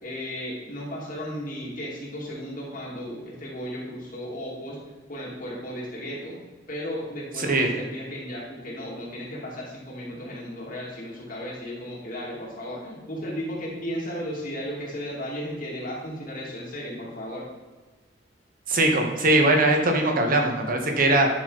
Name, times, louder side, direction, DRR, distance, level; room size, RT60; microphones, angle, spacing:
voice 1, 0.0-4.8 5.1-6.4 6.7-17.5, equal, 45° left, -4 dB, 2.5 m, -35 dB
voice 2, 18.7-21.3, right 2 dB, 50° right, 3 dB, 1.5 m, -21 dB
11.0 x 6.7 x 4.1 m, 1.3 s
head